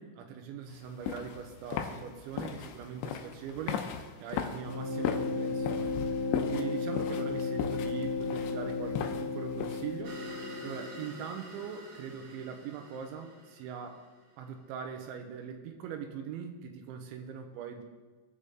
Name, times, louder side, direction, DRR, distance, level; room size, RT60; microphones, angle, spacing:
voice 1, 0.0-5.9 6.5-10.2 10.6-14.0 14.4-17.8, right 7 dB, 85° right, 5 dB, 3.3 m, -41 dB
sound 1, 0.8-10.0, left 9 dB, 85° left, 3.1 m, -37 dB
sound 2, 4.6-11.3, left 3 dB, 45° right, 4.8 m, -34 dB
sound 3, 10.0-14.6, right 1 dB, 60° right, 1.6 m, -48 dB
20.5 x 6.9 x 3.8 m, 1.3 s
omnidirectional pair, 5.3 m